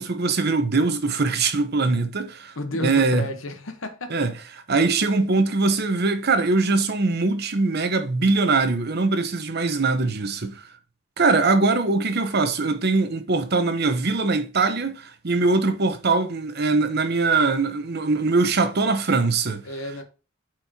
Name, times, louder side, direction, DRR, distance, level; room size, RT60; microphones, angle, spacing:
voice 1, 0.0-3.3 4.1-4.3 4.7-10.7 11.2-19.6, right 3 dB, 50° right, 0.9 m, -22 dB
voice 2, 2.6-4.1 19.6-20.0, left 1 dB, 70° left, 1.0 m, -31 dB
8.6 x 4.6 x 2.8 m
head